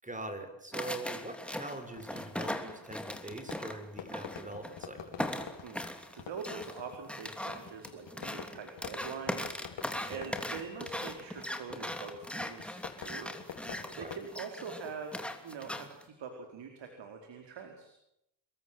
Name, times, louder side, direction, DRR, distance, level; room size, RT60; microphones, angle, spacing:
voice 1, 0.0-5.2 10.1-10.3 13.9-14.1, right 2 dB, 15° right, 7 dB, 6.4 m, -43 dB
sound 1, 0.7-4.8 5.2-16.0, left 1 dB, ahead, 2.9 m, -39 dB
Fireworks, 1.9-14.3, left 7 dB, 75° left, 4.6 m, -48 dB
voice 2, 6.1-17.9, right 5 dB, 70° right, 3 dB, 4.9 m, -44 dB
28.5 x 22.0 x 7.8 m, 0.80 s
cardioid pair, 105°, 44 cm